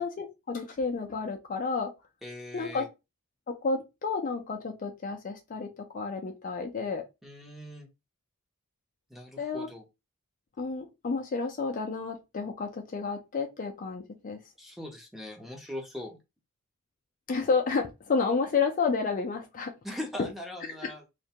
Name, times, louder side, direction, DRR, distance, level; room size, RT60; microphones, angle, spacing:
voice 1, 0.0-1.9 2.5-2.9 3.5-7.0 9.4-9.7 10.6-14.4 17.3-19.7 20.6-20.9, left 4 dB, 40° left, 0.4 m, -31 dB
voice 2, 2.2-2.9 7.2-7.9 9.1-9.8 14.6-16.2 19.8-21.0, left 1 dB, ahead, 0.6 m, -40 dB
2.4 x 2.2 x 2.8 m
head